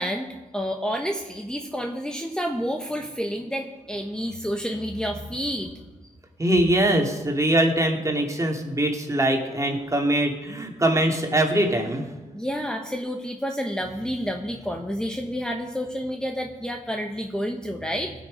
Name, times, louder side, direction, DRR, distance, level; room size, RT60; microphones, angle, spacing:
voice 1, 0.0-5.7 12.3-18.1, equal, 5° left, 3 dB, 1.4 m, -29 dB
voice 2, 6.4-12.1, right 1 dB, 20° right, 2 dB, 2.8 m, -22 dB
17.5 x 6.5 x 5.3 m, 1.2 s
supercardioid pair, 50°, 14 cm